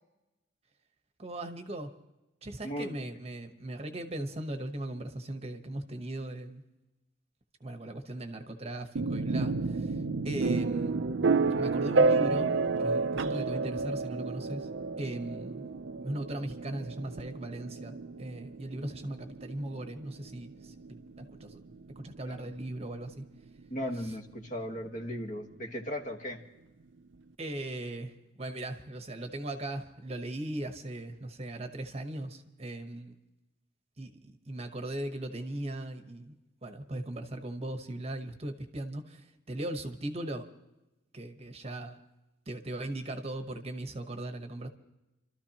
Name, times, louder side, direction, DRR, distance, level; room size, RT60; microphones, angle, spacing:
voice 1, 1.2-1.9 2.4-6.6 7.6-10.0 10.2-11.0 11.5-12.5 12.8-14.7 15.0-15.7 16.0-21.6 22.0-23.2 24.0-24.1 27.4-33.1 34.0-36.3 36.6-40.4 41.1-42.0 42.5-44.7, right 1 dB, 30° right, 7 dB, 1.0 m, -38 dB
voice 2, 2.6-3.0 22.2-22.5 23.7-26.4, equal, 40° left, 4 dB, 1.4 m, -37 dB
sound 1, 9.0-22.7, right 4 dB, 65° right, 0.5 m, -30 dB
29.5 x 13.0 x 2.9 m, 0.99 s
head